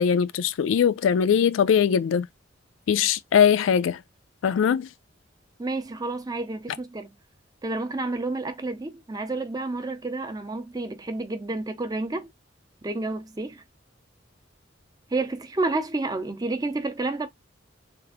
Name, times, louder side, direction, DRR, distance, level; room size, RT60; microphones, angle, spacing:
voice 1, 0.0-2.3 2.9-4.0 4.4-4.9, left 7 dB, 75° left, 0.3 m, -21 dB
voice 2, 5.6-7.1 7.6-12.3 12.8-13.6 15.1-17.3, right 2 dB, 20° right, 0.6 m, -30 dB
3.4 x 2.5 x 3.5 m
head